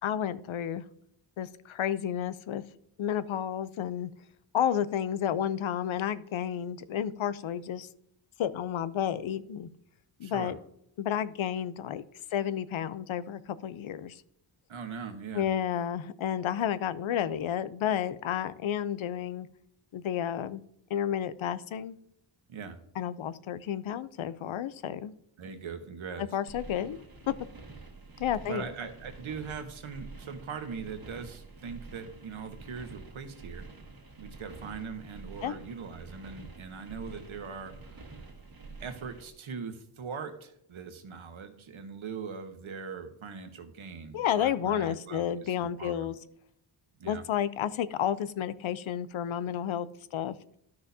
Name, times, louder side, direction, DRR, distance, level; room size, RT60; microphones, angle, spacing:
voice 1, 0.0-0.8 1.4-2.6 3.0-4.1 4.5-7.9 8.4-9.7 10.2-10.6 11.0-12.0 12.3-14.2 15.3-19.5 19.9-20.6 20.9-22.0 23.0-25.1 26.3-27.0 27.3-27.4 28.2-28.6 35.4-35.5 44.1-46.2 47.0-50.3, left 9 dB, 75° left, 15 dB, 0.6 m, -31 dB
voice 2, 10.2-10.5 14.7-15.4 22.5-22.8 25.4-26.4 28.5-33.7 34.2-38.2 38.8-46.1 47.0-47.2, right 6 dB, 70° right, 7 dB, 1.3 m, -41 dB
sound 1, 26.5-39.3, right 3 dB, 45° right, 1.5 m, -48 dB
12.0 x 6.3 x 2.7 m, 0.72 s
wide cardioid pair, 115°, 49 cm